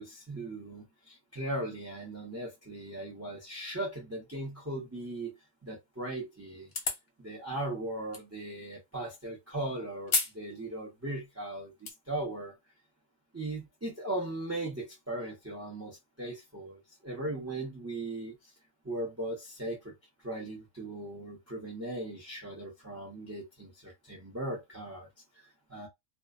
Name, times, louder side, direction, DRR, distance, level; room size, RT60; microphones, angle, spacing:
voice 1, 0.0-6.7 7.2-12.5 13.3-18.3 18.8-19.9 20.2-25.1 25.7-25.9, right 1 dB, 15° right, 0.6 m, -38 dB
sound 1, 6.7-7.1 8.1-8.2 10.1-10.4 10.8-10.9 11.5-11.9, left 3 dB, 55° left, 0.8 m, -30 dB
2.4 x 2.3 x 2.4 m
omnidirectional pair, 1.5 m